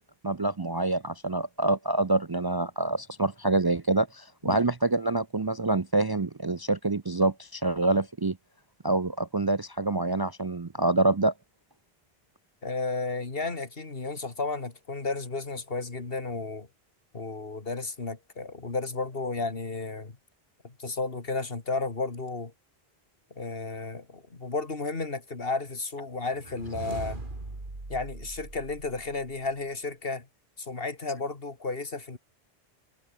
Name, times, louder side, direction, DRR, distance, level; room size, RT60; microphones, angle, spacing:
voice 1, 0.2-8.4 8.8-11.3, right 2 dB, 30° right, 0.6 m, -26 dB
voice 2, 12.6-16.7 17.1-20.2 20.6-22.5 23.4-27.2 27.9-30.3 30.6-32.2, left 3 dB, 65° left, 2.6 m, -33 dB
sound 1, 26.3-29.5, right 2 dB, 55° right, 3.6 m, -40 dB
omnidirectional pair, 1.0 m